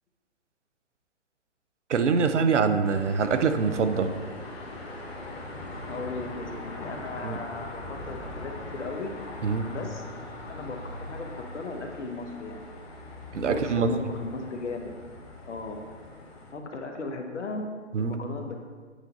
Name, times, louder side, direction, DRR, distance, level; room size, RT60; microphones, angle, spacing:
voice 1, 1.9-4.1 7.2-7.4 9.4-9.7 13.3-13.9 17.9-18.2, right 5 dB, 75° right, 9 dB, 0.7 m, -24 dB
sound 1, 2.8-16.5, left 2 dB, 55° left, 1.3 m, -41 dB
voice 2, 5.9-9.1 9.7-10.2 10.5-12.7 13.4-14.9 15.5-15.8 16.5-17.7 18.0-18.5, left 3 dB, 75° left, 4 dB, 1.1 m, -36 dB
8.1 x 4.0 x 3.9 m, 1.5 s
hypercardioid pair, 135°, 36 cm